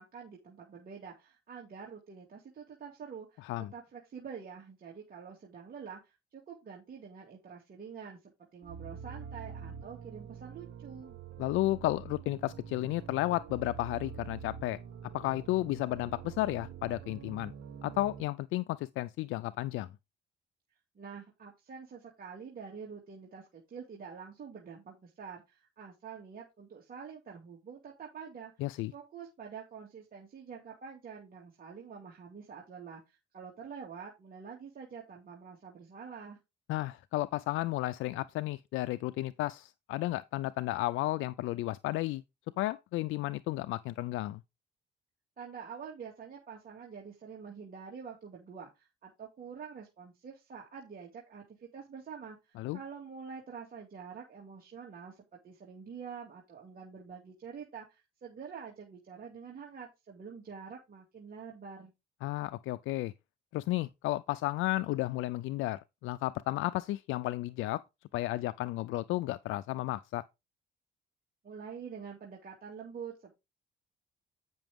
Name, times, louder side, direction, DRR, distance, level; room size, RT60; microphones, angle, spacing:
voice 1, 0.0-3.4 3.7-11.2 20.9-28.5 28.9-36.4 45.4-61.9 71.4-73.3, right 6 dB, 50° right, 2.4 m, -47 dB
sound 1, 8.6-18.2, right 7 dB, 80° right, 2.5 m, -46 dB
voice 2, 11.4-14.8 15.1-17.5 17.8-19.9 28.6-28.9 36.7-42.2 42.6-44.4 52.6-52.8 62.2-63.1 63.5-67.8 68.1-70.2, left 17 dB, 90° left, 0.4 m, -33 dB
9.0 x 5.9 x 3.5 m
cardioid pair, 90°, 20 cm